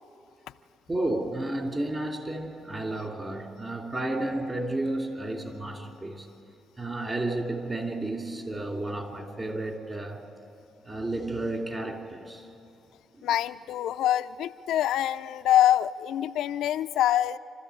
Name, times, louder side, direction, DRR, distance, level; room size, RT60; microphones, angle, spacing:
voice 1, 0.9-6.3 6.8-10.2 10.8-12.5 13.1-13.2, right 2 dB, 25° right, 3 dB, 2.9 m, -32 dB
voice 2, 13.2-17.4, left 12 dB, 85° left, 10 dB, 0.4 m, -25 dB
27.5 x 13.0 x 8.5 m, 2.6 s
cardioid pair, 90°, 0 cm